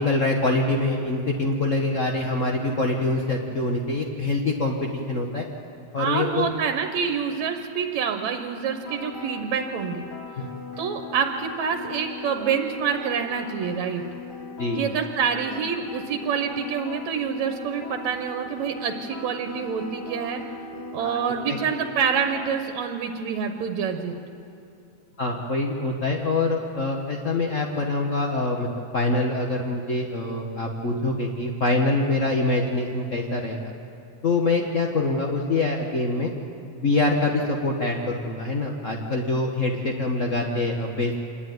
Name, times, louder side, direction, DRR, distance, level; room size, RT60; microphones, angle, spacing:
voice 1, 0.0-5.5 5.9-6.5 14.6-14.8 21.0-21.2 21.5-21.6 25.2-33.7 34.2-36.3 36.8-41.2, left 2 dB, 75° left, 1 dB, 0.7 m, -25 dB
voice 2, 6.0-10.1 10.8-14.0 14.8-20.4 20.9-24.1, right 7 dB, 70° right, 5 dB, 2.2 m, -27 dB
sound 1, 8.8-22.6, left 3 dB, 50° left, 2.7 m, -39 dB
26.0 x 11.5 x 9.4 m, 2.7 s
omnidirectional pair, 3.4 m